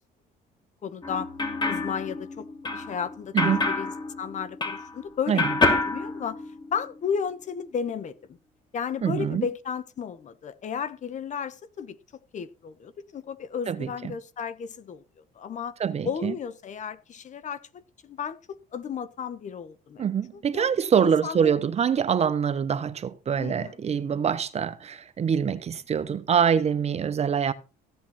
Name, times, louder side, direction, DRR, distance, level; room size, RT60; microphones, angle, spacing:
voice 1, 0.8-1.3 1.6-3.9 4.2-5.5 5.7-6.4 6.7-8.4 8.7-12.0 12.3-15.0 15.3-15.8 16.0-20.0 20.3-20.7 21.0-21.5 23.4-23.7, left 7 dB, 45° left, 1.2 m, -33 dB
sound 1, 1.0-5.1 5.4-6.9, left 3 dB, 25° left, 2.8 m, -28 dB
voice 2, 3.3-3.7 5.3-5.8 9.0-9.5 13.7-14.1 15.8-16.3 20.0-27.5, right 7 dB, 40° right, 1.1 m, -25 dB
15.0 x 8.7 x 4.3 m
cardioid pair, 110°, 17 cm